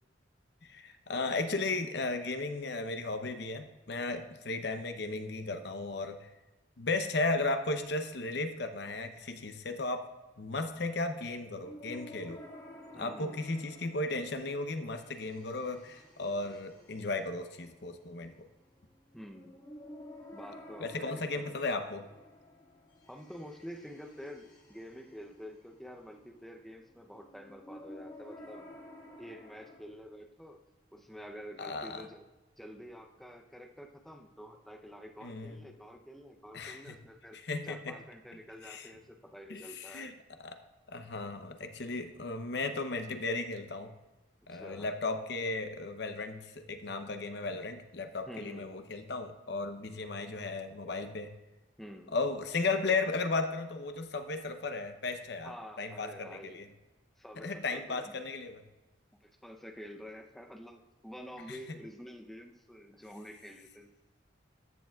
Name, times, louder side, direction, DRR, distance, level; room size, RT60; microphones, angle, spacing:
voice 1, 0.6-6.3 6.8-10.0 10.4-12.4 12.9-18.4 20.8-22.1 31.6-32.1 35.2-35.6 36.5-37.0 37.3-37.9 38.6-38.9 39.5-40.1 40.4-40.6 40.9-43.9 44.5-51.3 52.1-56.7 57.4-58.6 61.5-61.8, left 3 dB, 60° left, 8 dB, 0.7 m, -35 dB
sound 1, 11.6-29.8, left 1 dB, 20° left, 1.8 m, -53 dB
voice 2, 12.9-13.5 19.1-19.6 20.3-21.6 23.1-28.7 29.2-30.6 30.9-32.2 32.6-37.4 37.6-40.1 44.5-44.9 48.3-48.7 51.8-52.1 55.4-56.6 57.2-58.2 59.2-63.9, equal, ahead, 3 dB, 0.6 m, -48 dB
13.5 x 6.8 x 2.3 m, 1.1 s
head